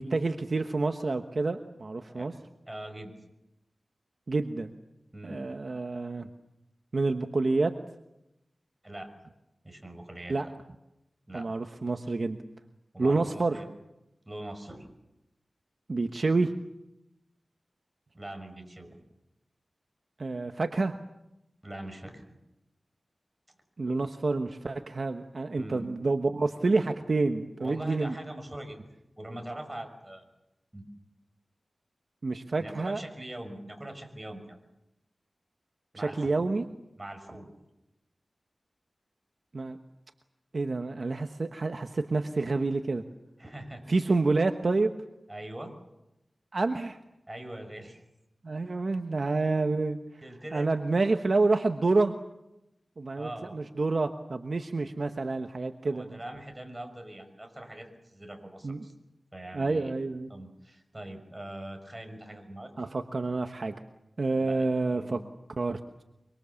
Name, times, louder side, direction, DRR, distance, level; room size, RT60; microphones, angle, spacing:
voice 1, 0.0-2.3 4.3-4.7 5.2-6.3 6.9-7.7 10.3-10.4 11.3-12.4 13.0-13.6 15.9-16.5 20.2-20.9 23.8-28.1 32.2-33.0 35.9-36.7 39.5-39.8 40.5-43.0 43.9-44.9 46.5-47.0 48.4-50.0 50.5-52.1 53.0-56.2 58.6-58.8 59.5-60.3 62.8-63.7 64.2-65.2 65.6-65.8, right 3 dB, 60° right, 6 dB, 1.2 m, -28 dB
voice 2, 2.1-2.4 2.7-3.1 5.1-5.4 8.8-9.1 9.6-10.5 11.3-11.5 12.9-13.7 14.3-14.9 18.1-19.0 21.6-22.2 25.5-25.9 27.6-28.8 29.2-30.3 30.7-30.8 32.6-34.6 35.9-36.5 36.9-37.5 43.4-43.8 45.3-45.7 47.3-48.0 50.2-50.7 53.2-53.6 55.8-58.9 59.3-59.9 60.3-62.7 64.4-65.2, right 1 dB, 20° right, 5 dB, 6.0 m, -42 dB
25.0 x 24.0 x 7.2 m, 0.90 s
wide cardioid pair, 70°, 0 cm